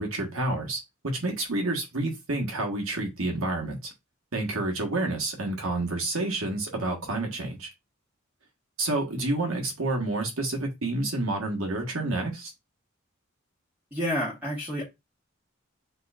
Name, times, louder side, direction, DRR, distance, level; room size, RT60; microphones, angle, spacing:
voice 1, 0.0-3.9 4.3-7.7 8.8-12.5, right 2 dB, 85° right, 1.5 m, -29 dB
voice 2, 13.9-14.8, equal, 10° right, 1.2 m, -29 dB
6.6 x 3.1 x 2.5 m
head